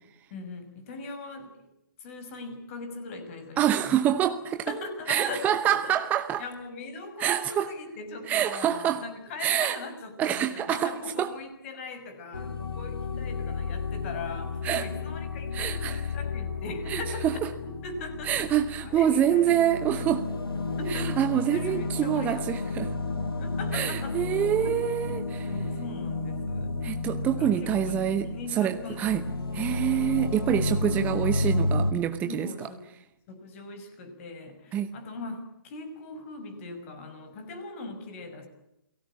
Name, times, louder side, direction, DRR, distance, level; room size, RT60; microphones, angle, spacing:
voice 1, 0.3-1.5 2.0-4.2 4.7-5.9 6.4-17.3 17.6-19.6 20.0-22.7 23.2-24.7 25.0-25.1 25.4-26.7 27.2-29.2 32.3-32.9 33.3-38.5, left 3 dB, 35° left, 9 dB, 5.7 m, -40 dB
voice 2, 3.6-4.7 5.1-6.4 7.2-7.7 8.3-9.0 9.4-9.8 10.2-11.3 14.6-14.9 15.5-16.1 16.9-17.3 18.2-20.2 20.9-22.9 23.7-25.5 26.8-29.3 29.5-32.5 34.7-34.9, right 10 dB, 15° right, 8 dB, 0.9 m, -26 dB
sound 1, 12.3-31.9, left 2 dB, 80° left, 3.5 m, -32 dB
29.5 x 18.5 x 8.6 m, 0.87 s
figure-of-eight pair, 140°, 12 cm